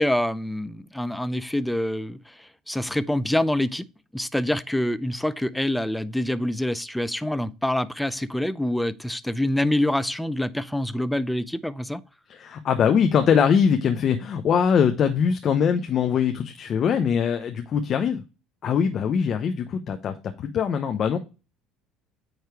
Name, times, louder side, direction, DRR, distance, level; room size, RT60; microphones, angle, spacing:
voice 1, 0.0-3.8 4.1-12.0, left 1 dB, 5° left, 0.6 m, -26 dB
voice 2, 12.3-18.2 18.6-21.2, left 7 dB, 45° left, 0.8 m, -22 dB
9.1 x 3.2 x 4.7 m
hypercardioid pair, 75°, 0 cm